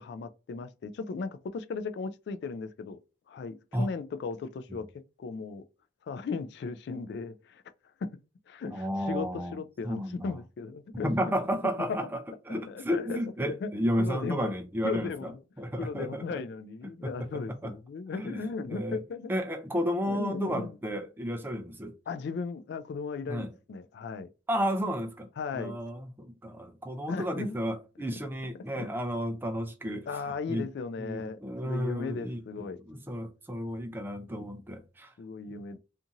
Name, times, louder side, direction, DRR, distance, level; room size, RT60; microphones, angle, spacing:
voice 1, 0.0-3.0 3.3-4.9 5.2-5.6 6.1-7.6 8.0-8.2 8.5-11.3 11.9-12.0 12.5-13.2 13.5-13.7 14.0-14.5 14.8-15.4 15.8-19.3 20.0-20.8 22.1-24.3 25.4-25.8 27.1-27.6 28.7-28.9 30.1-32.8 35.2-35.8, left 4 dB, 65° left, 0.3 m, -36 dB
voice 2, 8.7-9.6 9.8-10.4 11.0-12.2 12.5-15.3 15.6-16.4 17.0-17.1 17.6-17.7 18.1-19.0 19.3-21.9 23.3-23.5 24.5-25.3 25.5-30.1 30.5-30.7 31.0-32.4 32.9-35.1 35.5-35.6, equal, 10° right, 0.4 m, -32 dB
2.6 x 2.5 x 2.7 m
head